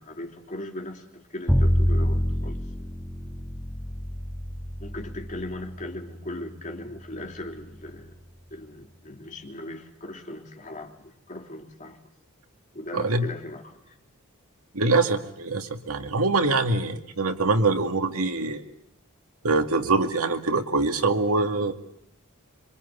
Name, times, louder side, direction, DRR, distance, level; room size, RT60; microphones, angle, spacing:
voice 1, 0.0-2.6 4.8-8.1 8.5-12.0 12.7-13.8, left 1 dB, 35° left, 2 dB, 3.3 m, -38 dB
Bowed string instrument, 1.5-7.6, equal, 5° left, 1.6 m, -27 dB
voice 2, 12.9-13.3 14.7-18.6 19.4-21.7, right 3 dB, 90° right, 6 dB, 2.3 m, -24 dB
27.0 x 25.5 x 8.4 m, 0.71 s
head